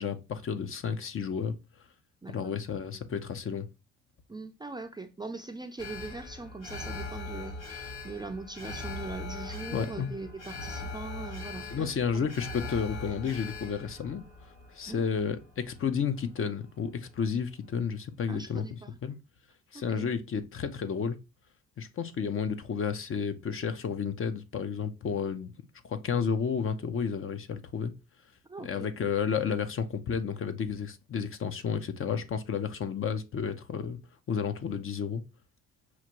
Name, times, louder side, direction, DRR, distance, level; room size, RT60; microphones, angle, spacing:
voice 1, 0.0-1.5 2.3-3.7 9.7-10.1 11.7-14.2 14.7-19.2 19.7-21.2 21.8-25.5 25.8-27.9 28.6-34.0 34.3-35.2, left 6 dB, 45° left, 0.7 m, -31 dB
voice 2, 2.2-2.6 4.3-12.3 14.9-15.0 18.3-19.0 19.7-20.1 28.5-28.9, right 3 dB, 15° right, 0.4 m, -41 dB
Alarm, 5.8-16.0 16.4-16.5, left 2 dB, 60° left, 2.3 m, -41 dB
5.8 x 2.5 x 2.9 m
cardioid pair, 90°, 30 cm